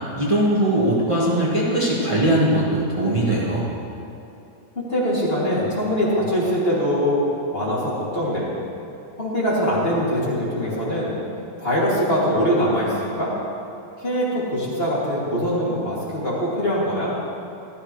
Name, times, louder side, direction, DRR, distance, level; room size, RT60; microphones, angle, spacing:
voice 1, 0.1-3.6, right 1 dB, 20° right, -6 dB, 1.5 m, -20 dB
voice 2, 4.7-7.2 7.5-8.5 9.2-11.2 11.6-13.3 14.0-17.1, equal, 40° left, -7 dB, 2.8 m, -22 dB
14.5 x 12.5 x 3.2 m, 2.6 s
omnidirectional pair, 1.6 m